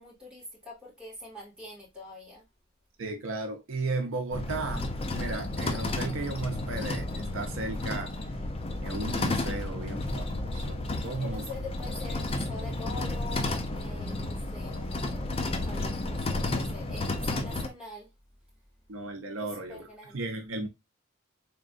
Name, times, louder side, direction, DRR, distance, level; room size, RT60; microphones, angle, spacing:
voice 1, 0.0-2.4 11.0-15.3 15.6-18.1 19.4-20.2, left 2 dB, 5° right, 2.3 m, -44 dB
voice 2, 3.0-8.1 8.8-11.4 18.9-20.7, right 3 dB, 70° right, 0.6 m, -35 dB
sound 1, 4.3-17.7, left 2 dB, 30° left, 0.5 m, -32 dB
3.8 x 3.5 x 2.5 m
head